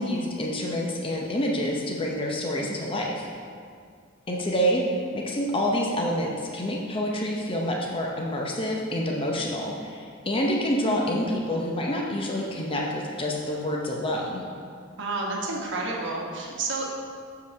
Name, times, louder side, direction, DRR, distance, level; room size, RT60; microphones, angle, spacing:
voice 1, 0.0-3.3 4.3-4.9 5.1-14.4, equal, 25° left, -2 dB, 0.7 m, -27 dB
voice 2, 2.6-3.0 15.0-16.8, right 3 dB, 60° right, -2 dB, 1.2 m, -30 dB
7.0 x 5.3 x 4.5 m, 2.2 s
head